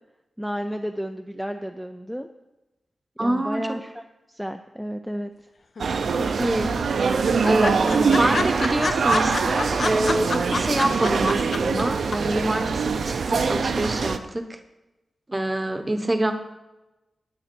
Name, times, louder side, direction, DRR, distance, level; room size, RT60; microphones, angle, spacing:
voice 1, 0.4-2.3 3.2-5.3, equal, ahead, 6 dB, 0.4 m, -32 dB
voice 2, 3.2-3.8 6.2-7.1 7.4-14.6 15.3-16.3, right 1 dB, 15° right, 7 dB, 1.0 m, -26 dB
sound 1, 5.8-6.4 6.7-6.8 7.1-7.2 7.4-11.8 12.1-12.2, left 3 dB, 45° left, 0.7 m, -27 dB
sound 2, 5.8-14.2, right 5 dB, 70° right, 0.7 m, -23 dB
10.0 x 7.8 x 6.1 m, 1.0 s
wide cardioid pair, 150°, 0 cm